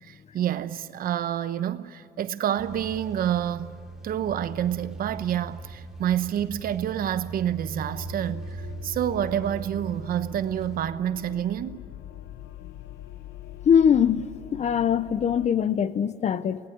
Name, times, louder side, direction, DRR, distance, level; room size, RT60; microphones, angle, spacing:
voice 1, 0.0-3.7 4.0-11.9, right 10 dB, 60° right, 1.0 m, -28 dB
sound 1, 2.6-10.9, right 2 dB, 5° right, 2.7 m, -40 dB
sound 2, 7.6-15.5, left 12 dB, 85° left, 0.9 m, -44 dB
voice 2, 13.6-16.6, left 8 dB, 40° left, 0.8 m, -22 dB
24.0 x 18.5 x 9.6 m
cardioid pair, 110°, 17 cm